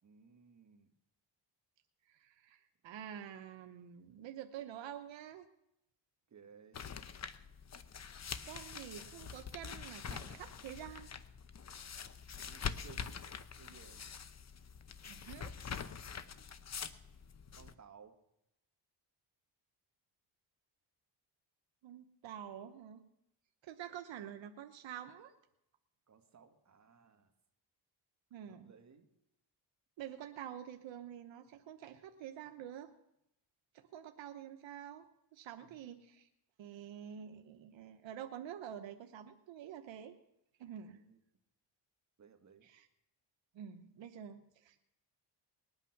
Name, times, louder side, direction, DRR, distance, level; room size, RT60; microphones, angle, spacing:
voice 1, 0.0-0.9 6.3-6.9 12.3-14.1 17.5-18.2 26.1-27.3 28.4-29.1 35.6-35.8 40.8-41.2 42.2-42.7, right 6 dB, 40° right, 4 dB, 1.9 m, -60 dB
voice 2, 2.1-5.5 8.4-11.1 15.0-15.5 21.8-23.0 23.6-25.3 28.3-28.7 30.0-32.9 33.7-35.0 35.3-36.3 36.6-40.2 40.6-41.0 42.6-42.9 43.5-44.8, right 10 dB, 80° right, 7 dB, 1.0 m, -48 dB
sound 1, 6.7-17.7, left 7 dB, 35° left, 0.8 m, -45 dB
20.5 x 9.0 x 5.9 m, 0.83 s
cardioid pair, 130°, 44 cm